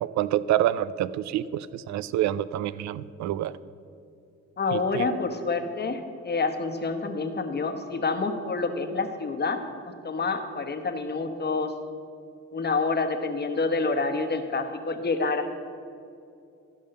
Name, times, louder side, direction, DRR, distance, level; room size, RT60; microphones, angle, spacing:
voice 1, 0.0-3.5 4.7-5.1, right 12 dB, 65° right, 17 dB, 0.4 m, -27 dB
voice 2, 4.6-11.7 12.5-15.5, left 3 dB, 35° left, 6 dB, 1.1 m, -28 dB
13.0 x 5.3 x 6.5 m, 2.5 s
cardioid pair, 90°, 30 cm